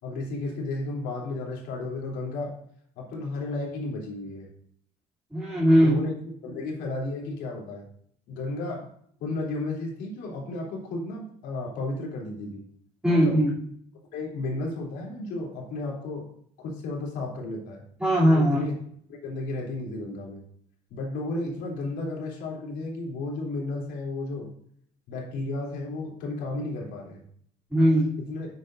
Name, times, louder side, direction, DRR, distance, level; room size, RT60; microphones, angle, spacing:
voice 1, 0.0-2.5 3.0-4.5 5.8-6.2 6.4-7.9 8.3-8.9 9.2-12.6 13.0-13.4 14.1-16.3 16.6-17.8 18.3-18.7 19.1-20.4 20.9-24.5 25.1-27.2 28.3-28.5, left 2 dB, 90° left, -1 dB, 3.1 m, -33 dB
voice 2, 5.3-6.0 13.0-13.5 18.0-18.6 27.7-28.1, equal, 5° right, -7 dB, 2.8 m, -19 dB
11.0 x 8.0 x 2.6 m, 0.64 s
cardioid pair, 110°, 17 cm